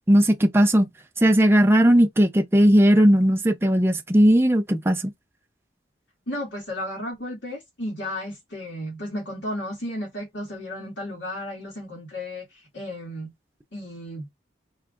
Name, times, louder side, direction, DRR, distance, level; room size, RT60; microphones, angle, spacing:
voice 1, 0.1-0.9 1.2-5.1, equal, 15° right, 0.5 m, -17 dB
voice 2, 6.3-13.3 13.7-14.3, left 1 dB, 85° left, 2.1 m, -33 dB
4.6 x 3.1 x 2.5 m
head